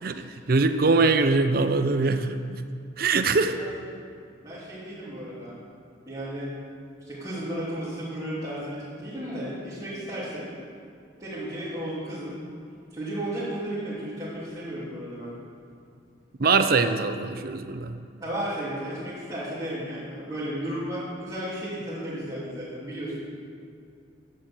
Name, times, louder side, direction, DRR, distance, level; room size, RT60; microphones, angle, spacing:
voice 1, 0.0-2.6 3.0-3.5 16.4-17.9, right 3 dB, 55° right, 8 dB, 0.6 m, -23 dB
voice 2, 4.4-5.6 6.1-6.5 7.0-10.5 11.2-12.3 12.9-15.3 18.2-23.2, right 1 dB, 20° right, -11 dB, 3.1 m, -34 dB
11.5 x 8.6 x 7.8 m, 2.4 s
head